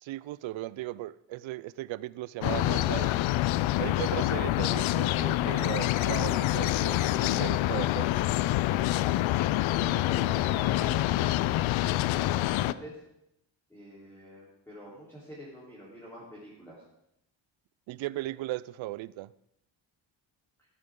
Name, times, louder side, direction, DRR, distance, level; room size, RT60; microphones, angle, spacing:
voice 1, 0.0-3.1 3.8-8.2 17.9-19.3, right 16 dB, 80° right, 0.6 m, -37 dB
sound 1, 2.4-12.7, left 15 dB, 85° left, 0.6 m, -26 dB
voice 2, 9.7-13.0 13.7-16.8, equal, 5° left, 3.7 m, -47 dB
16.0 x 13.5 x 3.8 m
cardioid pair, 170°, 46 cm